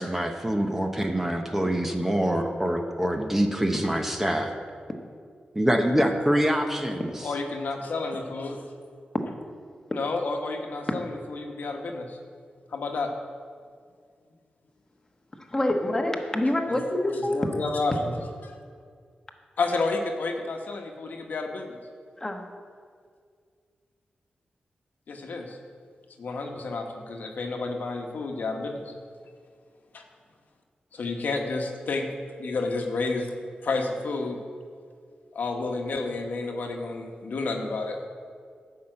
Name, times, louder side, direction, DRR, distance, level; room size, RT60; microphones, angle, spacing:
voice 1, 0.0-4.5 5.5-7.1, equal, 10° right, 4 dB, 0.8 m, -25 dB
voice 2, 7.2-8.6 9.9-12.4 12.7-13.1 16.7-16.8 17.1-18.1 18.4-18.6 19.6-21.8 25.1-25.6 26.2-28.9 29.9-30.0 30.9-32.1 32.4-33.3 33.6-34.4 35.3-38.0, left 3 dB, 70° left, 3 dB, 1.1 m, -30 dB
voice 3, 15.4-17.5 22.2-22.5, left 1 dB, 15° left, 2 dB, 1.1 m, -26 dB
10.5 x 5.6 x 7.8 m, 2.1 s
wide cardioid pair, 110°, 3 cm